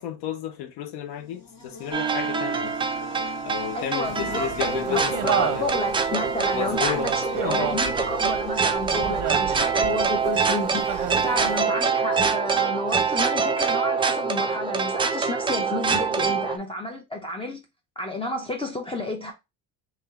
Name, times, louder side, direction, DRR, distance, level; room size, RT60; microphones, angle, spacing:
voice 1, 0.0-2.7 3.4-5.7 6.5-7.1 7.4-7.8, left 10 dB, 75° left, 0.9 m, -32 dB
Buzz, 1.1-9.3, left 3 dB, 55° left, 2.1 m, -44 dB
sound 1, 1.9-16.6, right 5 dB, 15° right, 0.4 m, -25 dB
voice 2, 3.7-4.5 4.9-17.6 18.0-19.3, left 1 dB, 15° left, 0.7 m, -31 dB
sound 2, 4.0-11.6, right 10 dB, 50° right, 0.6 m, -33 dB
3.2 x 2.9 x 3.6 m
supercardioid pair, 105°, 39 cm